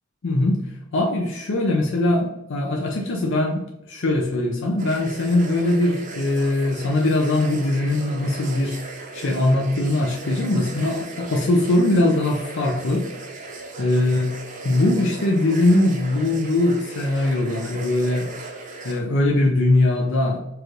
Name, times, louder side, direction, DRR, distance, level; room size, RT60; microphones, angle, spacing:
voice 1, 0.2-0.6 0.9-13.1 13.8-14.3 14.6-18.3 18.8-20.5, left 2 dB, 65° left, 0 dB, 0.5 m, -21 dB
sound 1, 4.8-19.0, right 3 dB, 40° right, 0.6 m, -37 dB
4.6 x 2.5 x 3.0 m, 0.87 s
head